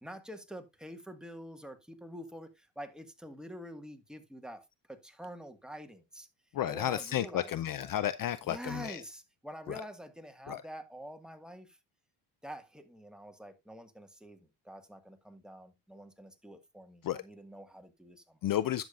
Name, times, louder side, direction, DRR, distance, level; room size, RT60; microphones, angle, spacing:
voice 1, 0.0-6.3 6.6-7.9 8.4-11.8 12.4-18.4, equal, ahead, 1.6 m, -47 dB
voice 2, 6.5-9.0 9.7-9.8 10.5-10.6 17.0-17.2 18.4-18.9, left 12 dB, 50° left, 0.5 m, -32 dB
11.5 x 7.1 x 2.4 m
cardioid pair, 80°, 43 cm